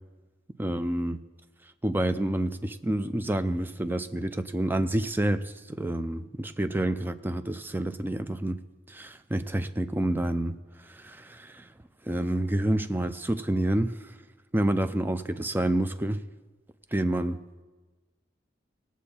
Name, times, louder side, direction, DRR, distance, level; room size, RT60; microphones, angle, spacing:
voice 1, 0.6-1.2 1.8-8.6 8.9-10.6 10.9-11.6 12.1-13.9 14.5-16.2 16.9-17.4, right 1 dB, 10° right, 0.4 m, -28 dB
18.5 x 7.2 x 4.3 m
head